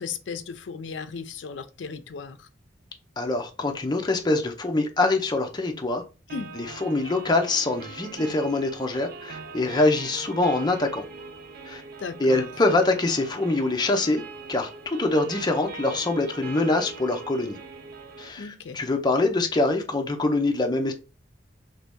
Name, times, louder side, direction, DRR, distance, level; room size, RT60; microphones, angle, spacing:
voice 1, 0.0-2.5 6.3-6.5 12.0-12.5 18.4-18.8, left 5 dB, 80° left, 0.4 m, -36 dB
voice 2, 3.2-6.0 6.5-11.0 11.7-11.8 12.2-14.2 14.5-17.6 18.2-20.9, left 2 dB, 25° left, 0.6 m, -24 dB
sound 1, 6.3-18.3, right 4 dB, 55° right, 0.5 m, -41 dB
3.0 x 2.7 x 3.5 m
head